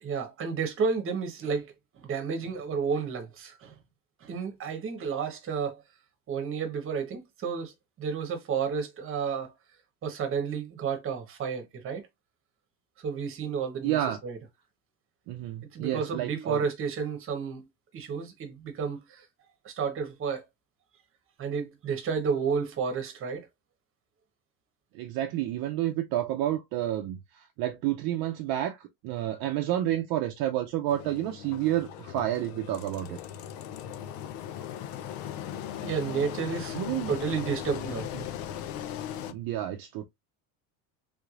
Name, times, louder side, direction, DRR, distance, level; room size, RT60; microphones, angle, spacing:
voice 1, 0.0-3.7 4.2-5.8 6.3-7.7 8.0-9.5 10.0-12.0 13.0-14.4 15.7-17.6 17.9-19.2 19.6-20.4 21.4-23.5 35.8-36.8 37.1-38.1, right 6 dB, 30° right, 1.0 m, -31 dB
voice 2, 13.8-14.2 15.3-16.6 24.9-33.2 36.7-37.1 38.1-38.3 39.3-40.0, right 12 dB, 55° right, 0.6 m, -30 dB
Engine, 30.9-39.3, left 10 dB, 90° left, 0.7 m, -38 dB
3.4 x 3.2 x 2.4 m
cardioid pair, 155°, 43 cm